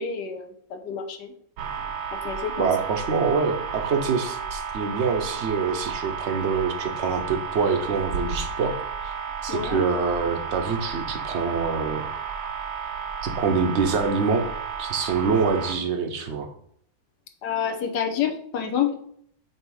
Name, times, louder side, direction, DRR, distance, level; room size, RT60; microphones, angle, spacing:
voice 1, 0.0-1.3 2.2-2.7 9.5-9.8 17.4-18.9, left 8 dB, 70° left, 5 dB, 1.4 m, -28 dB
sound 1, 1.6-15.7, right 6 dB, 70° right, 1.2 m, -32 dB
voice 2, 2.6-9.1 9.4-12.0 13.2-14.5 14.8-16.5, right 5 dB, 55° right, 5 dB, 0.8 m, -25 dB
7.6 x 2.9 x 4.7 m, 0.66 s
omnidirectional pair, 1.9 m